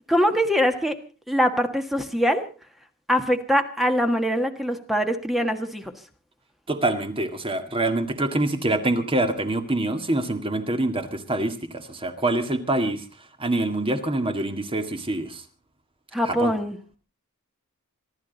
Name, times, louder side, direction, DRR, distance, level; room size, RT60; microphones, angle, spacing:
voice 1, 0.1-0.9 1.3-2.5 3.1-5.8 16.1-16.8, equal, ahead, 6 dB, 1.4 m, -23 dB
voice 2, 6.7-13.0 13.4-15.4 16.2-16.5, right 2 dB, 25° right, 7 dB, 1.9 m, -25 dB
26.0 x 12.5 x 4.0 m, 0.34 s
head